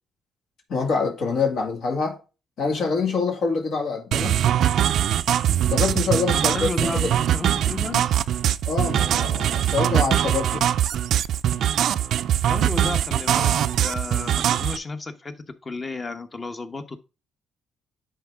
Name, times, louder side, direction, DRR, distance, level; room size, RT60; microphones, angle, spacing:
voice 1, 0.7-2.2 2.6-4.4 5.7-7.1 8.6-10.6, left 4 dB, 70° left, 2.1 m, -25 dB
sound 1, 4.1-14.8, right 11 dB, 70° right, 0.4 m, -22 dB
voice 2, 6.3-8.2 12.4-15.3 15.6-17.0, left 3 dB, 30° left, 1.0 m, -33 dB
10.5 x 4.0 x 3.6 m
cardioid pair, 90°, 0 cm